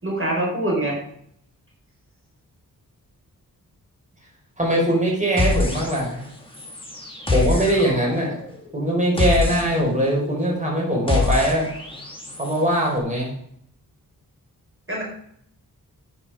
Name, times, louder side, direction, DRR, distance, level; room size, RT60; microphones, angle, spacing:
voice 1, 0.0-1.0 14.9-15.0, right 1 dB, 35° right, -3 dB, 5.2 m, -24 dB
voice 2, 4.6-6.2 7.3-8.4 8.7-11.7 12.4-13.3, right 1 dB, 20° right, -2 dB, 5.3 m, -21 dB
sound 1, 5.4-6.3 6.5-12.6, left 3 dB, 15° left, 3.2 m, -26 dB
9.6 x 8.9 x 5.2 m, 0.68 s
cardioid pair, 50°, 36 cm